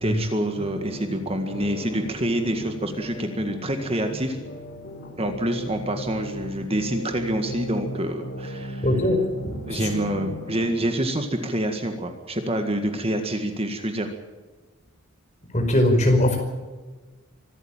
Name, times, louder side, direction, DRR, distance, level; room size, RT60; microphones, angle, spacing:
voice 1, 0.0-4.4 5.2-8.9 9.7-14.1, right 1 dB, 25° right, 6 dB, 1.8 m, -27 dB
sound 1, 0.6-10.8, equal, 55° left, 4.2 m, -37 dB
voice 2, 8.8-9.9 15.5-16.4, left 1 dB, 30° left, 4 dB, 5.0 m, -21 dB
24.5 x 13.5 x 9.0 m, 1.3 s
head